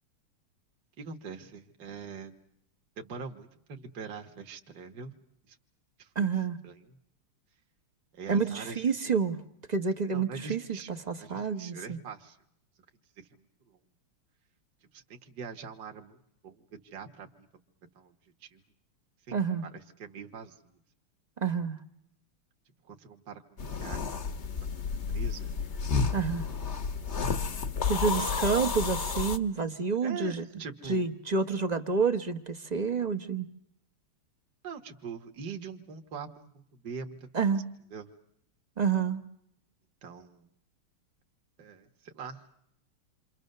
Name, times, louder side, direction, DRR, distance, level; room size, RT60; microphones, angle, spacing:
voice 1, 1.0-2.3 3.0-5.1 5.5-5.6 6.0-6.3 6.6-7.0 8.1-8.8 10.1-12.4 13.2-13.8 14.9-16.2 16.4-17.5 18.0-18.1 18.4-18.6 19.3-20.8 22.8-24.2 25.1-25.5 30.0-31.1 34.6-37.5 37.9-38.1 40.0-40.5 41.6-42.4, right 5 dB, 50° right, 4 dB, 2.0 m, -43 dB
voice 2, 6.1-6.6 8.3-9.4 9.7-12.0 19.3-19.7 21.4-21.8 26.1-26.5 27.9-30.4 30.8-33.5 37.3-37.6 38.8-39.2, right 5 dB, 30° right, 8 dB, 0.8 m, -29 dB
sound 1, 23.6-29.4, left 5 dB, 40° left, 1.1 m, -31 dB
28.5 x 25.0 x 6.7 m, 0.73 s
omnidirectional pair, 2.4 m